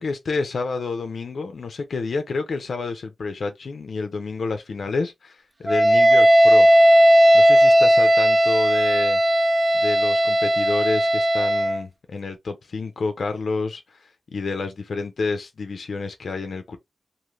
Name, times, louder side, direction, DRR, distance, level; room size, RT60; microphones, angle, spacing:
voice 1, 0.0-6.7 7.3-9.2 9.7-16.8, left 4 dB, 65° left, 0.4 m, -29 dB
Wind instrument woodwind instrument, 5.7-11.8, equal, 30° right, 0.3 m, -16 dB
2.5 x 2.4 x 3.1 m
wide cardioid pair, 120°, 0 cm